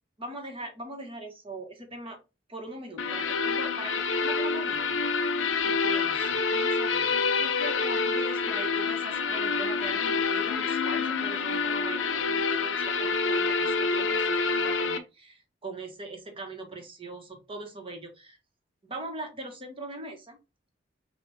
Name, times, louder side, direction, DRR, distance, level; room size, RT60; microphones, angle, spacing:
voice 1, 0.2-2.2 2.5-4.8 5.6-18.4 18.8-20.4, right 2 dB, 30° right, 4 dB, 1.2 m, -41 dB
sound 1, 3.0-15.0, left 4 dB, 80° left, 0.6 m, -27 dB
5.8 x 2.5 x 3.3 m, 0.28 s
head